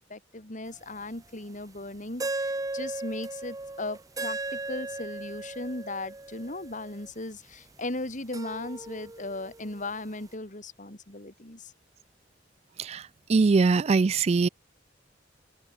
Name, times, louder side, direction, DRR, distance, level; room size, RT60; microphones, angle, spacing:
voice 1, 0.0-11.7, left 2 dB, 45° left, 3.5 m, -37 dB
sound 1, 0.8-0.9 2.2-7.1 8.3-9.9, right 2 dB, 20° right, 0.8 m, -36 dB
voice 2, 12.8-14.5, right 4 dB, 35° right, 0.3 m, -22 dB
open air
head